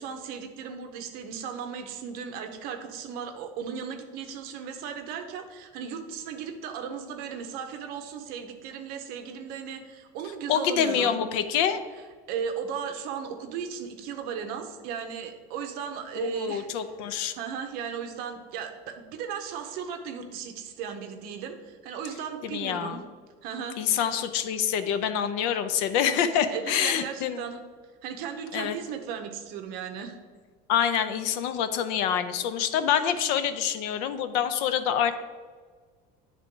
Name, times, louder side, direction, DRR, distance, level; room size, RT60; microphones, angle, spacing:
voice 1, 0.0-11.2 12.3-16.7 17.3-23.0 23.4-24.1 26.5-27.6 28.0-30.2, right 7 dB, 50° right, 6 dB, 0.7 m, -36 dB
voice 2, 10.5-11.8 16.2-17.3 22.5-23.0 23.8-27.4 28.5-28.8 30.7-35.2, left 8 dB, 60° left, 11 dB, 0.5 m, -26 dB
10.0 x 3.6 x 3.7 m, 1.5 s
cardioid pair, 175°, 19 cm